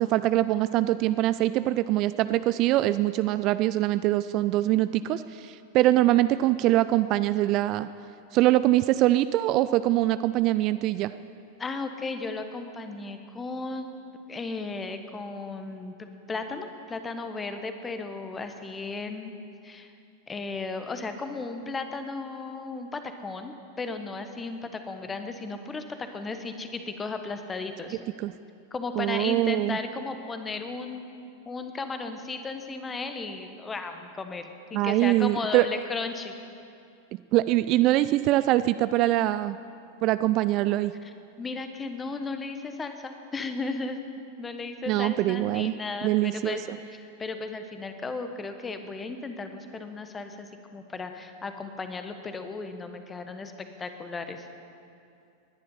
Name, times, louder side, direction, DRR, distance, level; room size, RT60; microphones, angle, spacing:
voice 1, 0.0-7.9 8.3-11.1 28.2-28.3 29.0-29.8 34.7-35.7 37.3-39.6 40.0-40.9 44.9-45.7 46.0-46.8, right 15 dB, 40° right, 14 dB, 0.3 m, -23 dB
voice 2, 11.6-13.9 14.3-15.9 16.3-19.3 19.6-19.9 20.3-28.1 28.7-31.1 31.5-36.3 41.0-54.5, left 3 dB, 15° left, 7 dB, 1.2 m, -35 dB
19.5 x 10.5 x 5.6 m, 2.6 s
figure-of-eight pair, 90°, 0 cm